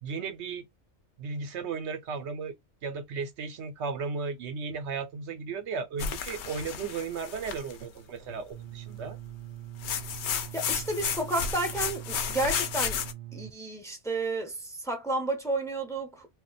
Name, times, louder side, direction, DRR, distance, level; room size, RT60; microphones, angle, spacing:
voice 1, 0.0-0.7 1.2-2.6 2.8-9.2, right 5 dB, 75° right, 0.9 m, -35 dB
sound 1, 6.0-7.8 9.8-13.1, left 7 dB, 75° left, 0.9 m, -32 dB
sound 2, 8.5-13.5, right 14 dB, 55° right, 0.5 m, -43 dB
voice 2, 10.5-13.0 13.3-16.3, right 2 dB, 5° left, 0.8 m, -31 dB
2.5 x 2.2 x 3.9 m
omnidirectional pair, 1.2 m